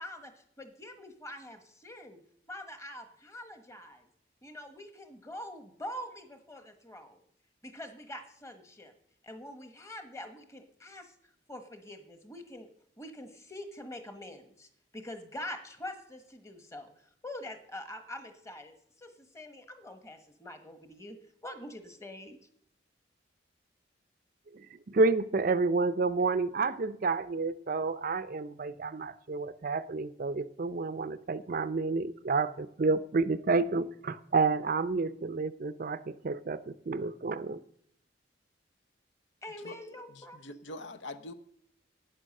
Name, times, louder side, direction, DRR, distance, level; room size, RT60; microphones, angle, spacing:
voice 1, 0.0-2.2 2.5-4.1 4.4-7.2 7.6-8.9 9.2-11.1 11.5-12.7 13.0-16.9 17.2-21.2 21.4-22.4 39.4-40.4, left 1 dB, 15° left, 7 dB, 1.2 m, -45 dB
voice 2, 24.5-37.6, right 3 dB, 50° right, 14 dB, 0.5 m, -30 dB
voice 3, 40.1-41.3, left 2 dB, 85° left, 11 dB, 0.8 m, -44 dB
11.0 x 9.1 x 6.5 m, 0.68 s
head